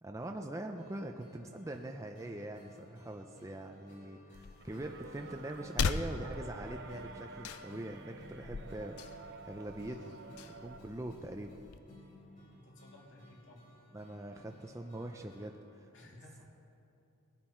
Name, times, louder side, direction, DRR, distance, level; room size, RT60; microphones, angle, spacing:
voice 1, 0.0-10.1 10.5-11.6 13.9-15.9, right 1 dB, 15° right, 3 dB, 0.5 m, -43 dB
sound 1, 0.7-15.5, left 1 dB, 35° left, 3.8 m, -58 dB
sound 2, 4.3-11.8, left 5 dB, 75° left, 0.5 m, -41 dB
sound 3, 4.6-10.8, right 4 dB, 50° right, 0.7 m, -51 dB
voice 2, 12.5-13.7 15.9-16.5, left 1 dB, 55° left, -2 dB, 2.5 m, -56 dB
20.5 x 11.5 x 4.4 m, 2.8 s
head